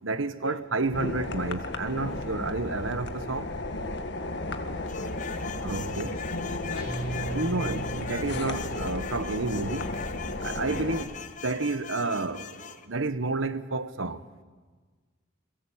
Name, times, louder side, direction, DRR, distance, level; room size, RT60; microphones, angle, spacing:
voice 1, 0.0-3.5 5.6-6.1 7.2-9.9 10.4-11.1 11.4-14.2, right 3 dB, 70° right, 1.2 m, -30 dB
sound 1, 0.9-11.0, left 2 dB, 55° left, 1.8 m, -34 dB
voice 2, 4.4-5.3 6.1-7.0 10.6-10.9, left 2 dB, 75° left, 2.7 m, -40 dB
sound 2, 4.9-12.9, left 8 dB, 40° left, 1.1 m, -42 dB
Guitar, 6.8-9.4, right 3 dB, 25° right, 6.7 m, -38 dB
30.0 x 22.5 x 8.6 m
head